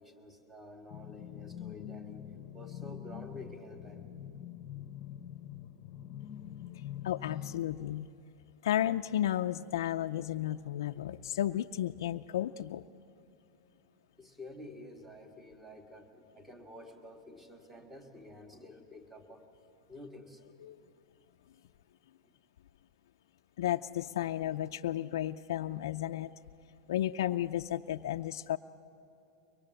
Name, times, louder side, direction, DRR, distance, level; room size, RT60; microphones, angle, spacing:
voice 1, 0.0-2.2 2.5-4.1 14.2-19.5 19.9-20.4 22.2-22.3, left 1 dB, 5° right, 6 dB, 1.7 m, -50 dB
sound 1, 0.9-7.6, left 10 dB, 35° left, 0.9 m, -45 dB
voice 2, 7.0-8.1 8.6-12.8 20.6-20.8 23.6-26.3 26.9-28.6, left 12 dB, 85° left, 6 dB, 0.4 m, -33 dB
24.0 x 21.5 x 7.7 m, 2.9 s
supercardioid pair, 155°, 2 cm